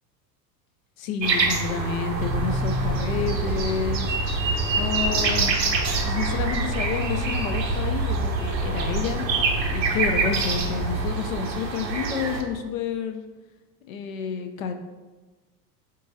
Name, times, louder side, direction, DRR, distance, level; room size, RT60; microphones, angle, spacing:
voice 1, 1.0-4.2 4.8-5.6 6.0-9.2 9.7-13.2 13.9-14.7, left 7 dB, 55° left, 6 dB, 0.6 m, -29 dB
sound 1, 1.2-12.4, right 4 dB, 90° right, 0.6 m, -27 dB
sound 2, 2.1-11.1, right 1 dB, ahead, 0.7 m, -29 dB
3.7 x 2.6 x 3.9 m, 1.2 s
figure-of-eight pair, 80°, 49 cm